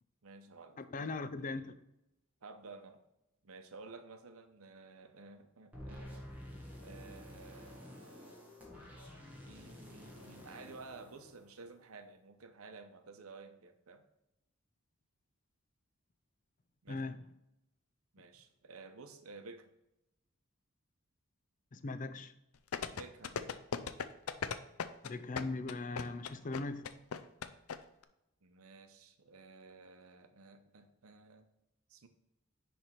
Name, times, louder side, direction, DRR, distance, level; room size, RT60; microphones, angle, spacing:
voice 1, 0.2-1.1 2.4-3.0 3.4-6.3 6.8-8.4 9.4-14.0 16.8-17.0 18.1-19.7 22.9-23.6 28.4-31.5 31.9-32.1, right 4 dB, 80° right, 0.8 m, -53 dB
voice 2, 0.8-1.7 16.9-17.2 21.7-22.3 25.0-26.9, left 3 dB, 40° left, 0.5 m, -39 dB
sound 1, 5.7-11.9, left 1 dB, 5° right, 1.6 m, -50 dB
sound 2, 22.7-27.8 28.0-28.1, left 6 dB, 90° left, 0.5 m, -37 dB
10.0 x 3.5 x 4.4 m
head